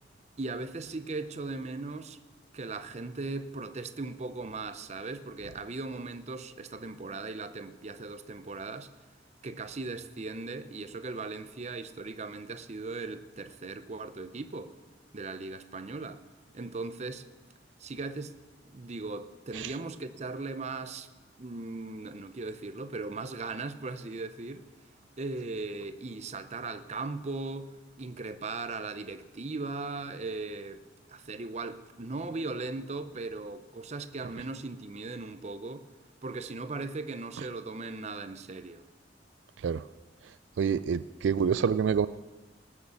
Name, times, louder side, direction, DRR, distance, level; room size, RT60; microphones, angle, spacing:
voice 1, 0.4-2.2 2.5-8.9 9.4-14.7 15.1-16.2 16.5-17.3 17.8-18.4 18.7-21.1 21.4-24.7 25.2-30.8 31.1-35.9 36.2-38.8, right 3 dB, 35° right, 0.6 m, -38 dB
voice 2, 40.6-42.1, right 6 dB, 80° right, 0.3 m, -27 dB
19.0 x 6.5 x 7.1 m
head